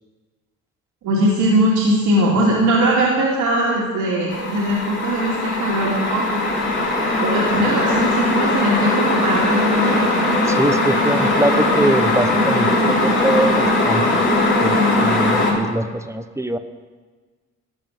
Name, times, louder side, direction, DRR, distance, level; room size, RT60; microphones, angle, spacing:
voice 1, 1.0-6.2 7.2-10.1, right 1 dB, 85° right, -6 dB, 2.7 m, -20 dB
sound 1, 4.3-15.5, left 2 dB, 40° left, 3.3 m, -19 dB
voice 2, 10.5-14.2 14.6-16.6, right 1 dB, 10° right, 9 dB, 0.8 m, -23 dB
14.5 x 5.1 x 9.4 m, 1.4 s
cardioid pair, 90°, 30 cm